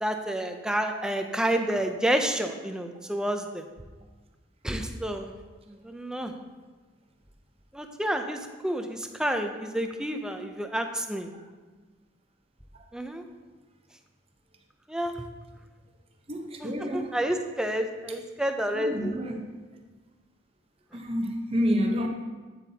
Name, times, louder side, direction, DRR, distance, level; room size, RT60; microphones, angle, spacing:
voice 1, 0.0-3.6 4.6-5.3 5.7-6.3 7.7-11.3 12.9-13.2 14.9-15.1 16.6-19.1, right 1 dB, 5° right, 5 dB, 0.5 m, -29 dB
voice 2, 16.3-17.1 18.7-19.4 20.9-22.1, equal, 30° right, 3 dB, 0.9 m, -29 dB
9.0 x 7.8 x 2.8 m, 1.3 s
head